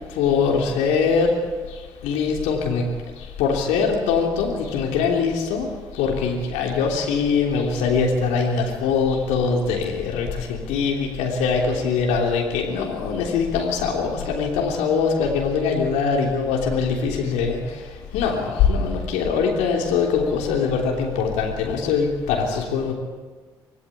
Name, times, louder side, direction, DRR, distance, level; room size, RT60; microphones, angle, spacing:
voice 1, 0.1-1.3 1.7-2.9 3.2-22.9, left 5 dB, 75° left, 0 dB, 3.3 m, -22 dB
26.0 x 19.0 x 8.7 m, 1.4 s
hypercardioid pair, 40°, 12 cm